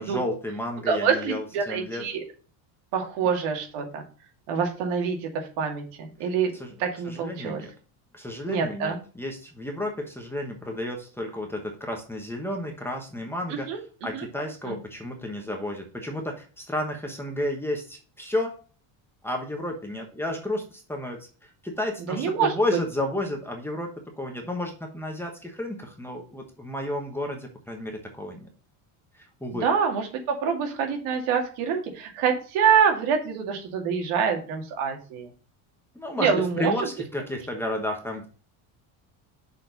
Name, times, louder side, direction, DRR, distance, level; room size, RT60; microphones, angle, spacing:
voice 1, 0.0-2.0 6.6-6.7 7.1-7.7 8.1-13.7 14.0-18.6 19.2-28.5 29.1-29.7 35.9-38.3, left 1 dB, 5° left, 1 dB, 1.1 m, -32 dB
voice 2, 0.9-2.2 2.9-4.0 4.5-6.5 6.8-7.6 8.5-9.0 13.5-13.8 14.1-14.3 14.7-14.8 22.1-22.5 29.5-35.3 36.2-36.7, right 6 dB, 85° right, 3 dB, 2.3 m, -26 dB
6.4 x 4.3 x 5.1 m, 0.38 s
cardioid pair, 170°, 47 cm